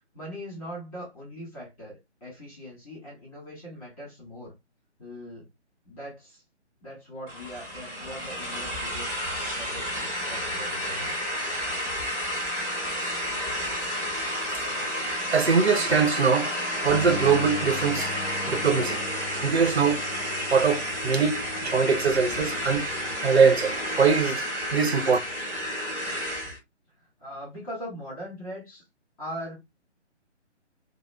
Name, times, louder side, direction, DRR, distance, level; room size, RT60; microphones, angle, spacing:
voice 1, 0.1-4.5 5.0-5.5 5.9-6.4 6.8-9.2 9.4-11.2 27.0-28.8 29.2-29.6, equal, 30° left, 1.8 m, -41 dB
sound 1, 7.3-26.6, equal, 15° right, 1.2 m, -31 dB
voice 2, 15.3-16.5 16.8-18.1 18.5-19.0 19.4-20.0 20.5-22.9 23.2-24.4 24.7-25.2, right 5 dB, 60° right, 0.7 m, -22 dB
Bass guitar, 16.9-23.1, left 4 dB, ahead, 1.0 m, -41 dB
4.7 x 2.0 x 2.2 m
figure-of-eight pair, 145°, 35 cm